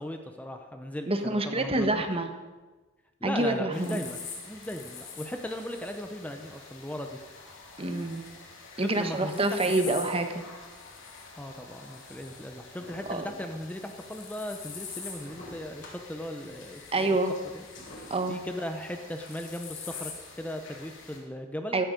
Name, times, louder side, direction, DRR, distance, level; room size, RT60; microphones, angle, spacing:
voice 1, 0.0-2.1 3.2-7.2 8.8-9.9 11.4-17.2 17.5-17.6 17.9-21.8, left 1 dB, 10° left, 5 dB, 0.8 m, -37 dB
voice 2, 1.1-2.3 3.2-4.0 7.8-8.2 8.8-10.4 13.1-13.2 16.9-17.3 18.1-18.4 21.7-21.9, right 2 dB, 30° right, 7 dB, 1.2 m, -27 dB
sound 1, 3.7-21.2, left 5 dB, 70° left, 3.2 m, -45 dB
sound 2, 12.8-14.1 14.8-14.9 15.2-15.9 16.6-16.7 17.8-18.1, left 1 dB, 50° left, 5.4 m, -47 dB
15.5 x 13.0 x 5.2 m, 1.3 s
head